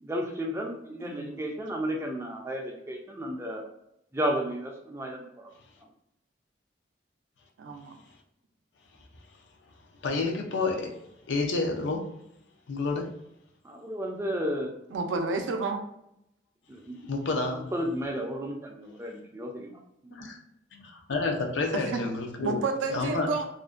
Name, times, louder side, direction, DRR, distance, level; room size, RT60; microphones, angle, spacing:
voice 1, 0.0-3.6 4.1-5.5 13.6-14.7 16.7-17.0 17.5-19.8, equal, 15° right, 1 dB, 0.3 m, -33 dB
voice 2, 1.0-1.4 7.6-8.0 14.9-15.8 21.7-22.0 22.4-23.5, right 4 dB, 85° right, 5 dB, 0.4 m, -30 dB
voice 3, 10.0-11.0 11.3-12.1 12.7-13.1 17.0-17.7 20.1-20.4 20.8-22.6 22.9-23.3, left 3 dB, 75° left, 1 dB, 0.5 m, -29 dB
2.5 x 2.1 x 2.4 m, 0.79 s
head